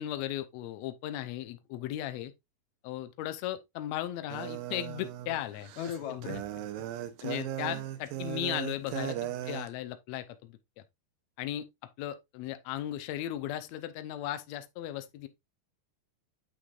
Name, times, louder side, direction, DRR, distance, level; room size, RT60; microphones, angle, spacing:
voice 1, 0.0-2.3 2.8-5.7 6.1-6.3 7.2-9.2 9.4-10.6 11.4-11.6 12.0-15.3, left 12 dB, 90° left, 1.5 m, -36 dB
sound 1, 4.3-9.7, right 12 dB, 85° right, 2.5 m, -37 dB
voice 2, 5.8-6.6 7.7-8.2 8.8-9.4, left 8 dB, 65° left, 2.4 m, -41 dB
8.1 x 6.1 x 2.4 m
omnidirectional pair, 4.0 m